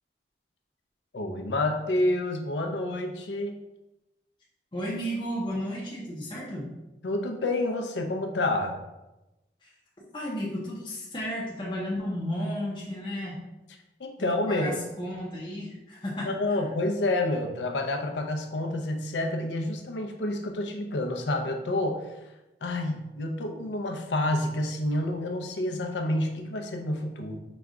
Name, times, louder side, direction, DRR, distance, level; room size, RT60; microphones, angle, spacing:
voice 1, 1.1-3.5 7.0-8.7 14.0-14.7 16.3-22.2 22.6-27.4, left 1 dB, 80° left, 4 dB, 0.6 m, -29 dB
voice 2, 4.7-6.7 9.6-9.7 10.1-13.4 14.2-16.6, equal, 25° left, -5 dB, 0.6 m, -33 dB
5.0 x 2.3 x 3.6 m, 0.99 s
head